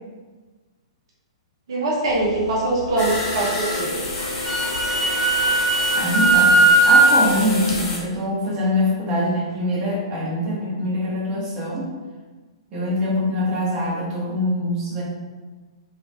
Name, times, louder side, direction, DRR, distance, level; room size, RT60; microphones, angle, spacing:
voice 1, 1.7-3.9, right 2 dB, 55° right, -4 dB, 0.7 m, -22 dB
sound 1, 2.1-7.8, left 4 dB, 65° left, 0.6 m, -33 dB
sound 2, 3.0-8.0, left 2 dB, 30° left, 0.9 m, -29 dB
Wind instrument woodwind instrument, 4.2-7.1, right 3 dB, 10° left, 0.5 m, -17 dB
voice 2, 5.9-11.9 12.7-15.0, left 1 dB, 25° right, -5 dB, 0.9 m, -24 dB
3.0 x 2.4 x 2.7 m, 1.3 s
figure-of-eight pair, 115°, 3 cm